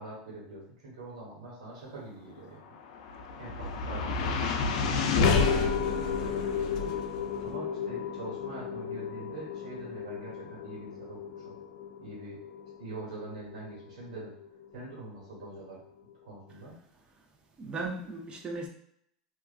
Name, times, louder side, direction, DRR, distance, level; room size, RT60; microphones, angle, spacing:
voice 1, 0.0-2.7 3.4-6.9 7.4-11.5 12.0-12.4 12.8-14.3 14.7-15.8 16.3-16.8, right 2 dB, 80° right, -4 dB, 1.2 m, -44 dB
sound 1, 2.7-15.0, left 5 dB, 75° left, 0.3 m, -31 dB
voice 2, 16.9-17.3 17.6-18.7, right 3 dB, 25° right, 2 dB, 0.5 m, -38 dB
2.4 x 2.2 x 2.4 m, 0.68 s
supercardioid pair, 110°, 4 cm